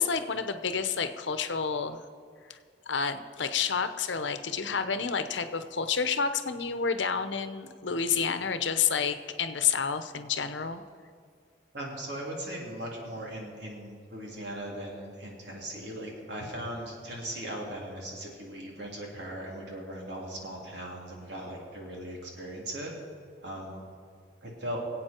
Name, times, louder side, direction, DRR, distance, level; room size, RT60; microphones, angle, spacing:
voice 1, 0.0-2.0 2.5-2.6 2.9-10.8, left 6 dB, 80° left, 10 dB, 0.9 m, -29 dB
voice 2, 11.7-22.9 23.4-23.8 24.4-24.8, right 1 dB, 70° right, -2 dB, 3.3 m, -38 dB
24.0 x 8.5 x 4.5 m, 2.2 s
head